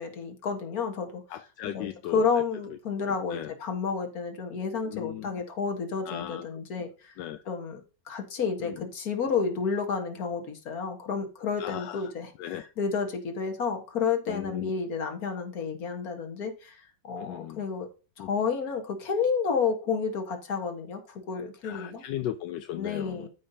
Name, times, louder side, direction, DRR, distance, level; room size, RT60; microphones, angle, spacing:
voice 1, 0.0-1.2 1.7-7.1 7.5-16.8 17.0-17.9 18.2-22.0 22.8-23.3, left 5 dB, 55° left, 1.9 m, -31 dB
voice 2, 1.3-2.2 3.3-3.5 4.9-5.3 6.1-6.5 7.2-7.4 8.6-8.8 11.6-12.0 12.4-12.7 14.3-14.7 17.2-17.6 18.2-18.3 21.6-23.3, left 12 dB, 80° left, 1.2 m, -36 dB
14.0 x 5.2 x 2.7 m
omnidirectional pair, 1.9 m